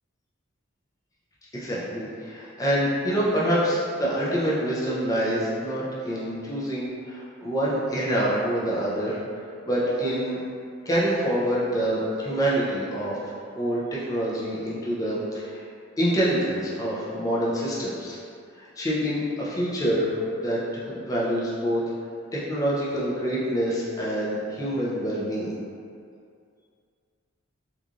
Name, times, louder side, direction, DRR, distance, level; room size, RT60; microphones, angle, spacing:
voice 1, 1.5-9.2 9.6-10.4 10.9-13.2 13.5-15.6 16.0-18.2 18.6-21.8 22.3-25.5, equal, 15° left, -7 dB, 0.5 m, -26 dB
3.0 x 2.4 x 2.4 m, 2.3 s
head